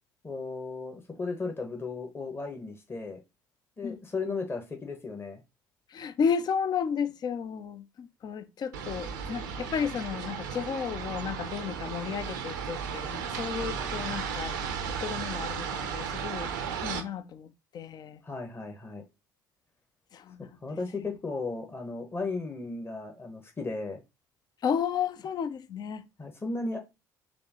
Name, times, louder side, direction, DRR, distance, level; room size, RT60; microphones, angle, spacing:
voice 1, 0.2-3.2 3.8-5.4 13.6-14.0 18.2-19.0 20.4-24.0 26.2-26.8, left 3 dB, 25° left, 1.0 m, -35 dB
voice 2, 5.9-14.6 15.0-18.2 20.1-20.6 24.6-26.1, left 7 dB, 45° left, 0.5 m, -33 dB
sound 1, 8.7-17.0, right 7 dB, 85° right, 0.6 m, -35 dB
4.2 x 3.2 x 2.9 m
hypercardioid pair, 60°, 10 cm